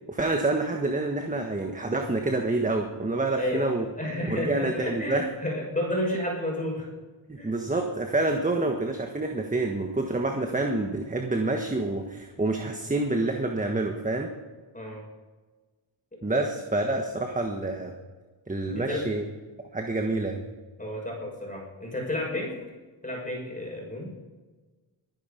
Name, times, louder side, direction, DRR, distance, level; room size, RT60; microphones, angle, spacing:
voice 1, 0.1-3.8 4.3-5.3 7.3-14.3 16.2-17.9 18.5-19.3 19.7-20.4, right 2 dB, 15° right, 4 dB, 1.5 m, -27 dB
voice 2, 3.4-3.7 4.0-6.9 7.4-7.5 14.7-15.0 16.3-16.4 18.7-19.0 20.8-22.5 23.0-24.1, left 1 dB, 15° left, -1 dB, 6.1 m, -31 dB
22.5 x 10.5 x 5.2 m, 1.3 s
cardioid pair, 95°, 48 cm